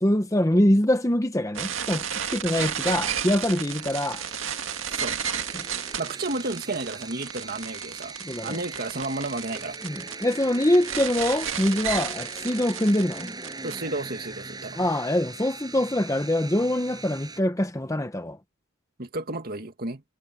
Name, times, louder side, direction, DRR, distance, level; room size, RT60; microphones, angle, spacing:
voice 1, 0.0-4.2 5.5-5.6 8.2-8.6 9.8-13.3 14.8-18.4, left 1 dB, 15° left, 0.9 m, -24 dB
sound 1, 1.6-13.8, right 8 dB, 65° right, 2.0 m, -32 dB
sound 2, 3.4-17.4, right 3 dB, 20° right, 6.5 m, -40 dB
voice 2, 6.0-8.2 8.4-9.8 13.6-14.9 19.0-20.0, right 2 dB, 45° right, 2.2 m, -32 dB
head